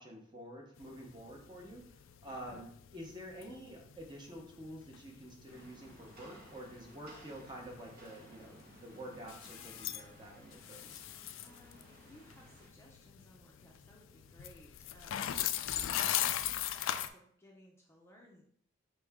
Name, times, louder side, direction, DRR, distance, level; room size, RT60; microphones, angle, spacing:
voice 1, 0.0-1.8 2.2-11.0, equal, 20° right, 0 dB, 0.9 m, -48 dB
sound 1, 0.8-17.1, left 11 dB, 65° left, 0.3 m, -40 dB
voice 2, 2.3-2.7 11.4-18.4, equal, 10° left, -3 dB, 0.6 m, -60 dB
Rain, 5.5-12.7, right 1 dB, 50° right, 0.9 m, -58 dB
4.3 x 3.4 x 3.5 m, 0.63 s
head